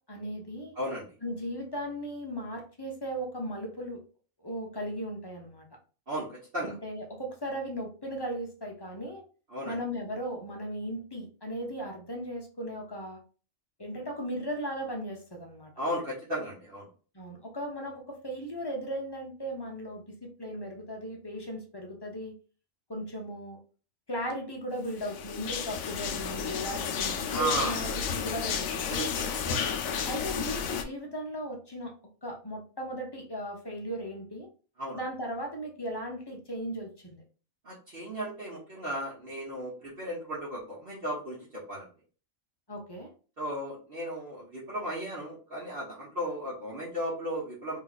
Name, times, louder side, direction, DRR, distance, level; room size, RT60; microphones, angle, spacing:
voice 1, 0.1-0.7 1.2-4.0 4.4-5.7 6.6-9.2 9.6-13.2 13.8-15.7 17.1-22.3 22.9-23.6 24.1-27.9 28.2-28.9 30.1-31.9 32.2-34.5 34.9-37.2 42.7-43.1, equal, 20° left, 0 dB, 0.9 m, -37 dB
voice 2, 0.7-1.1 6.1-6.8 9.5-9.8 15.8-16.9 27.3-27.7 28.9-29.7 34.8-35.0 37.6-41.9 43.4-47.8, right 1 dB, 45° right, -7 dB, 1.3 m, -35 dB
sound 1, 25.0-30.8, left 6 dB, 85° left, 1.0 m, -32 dB
3.1 x 3.1 x 4.0 m, 0.37 s
omnidirectional pair, 1.4 m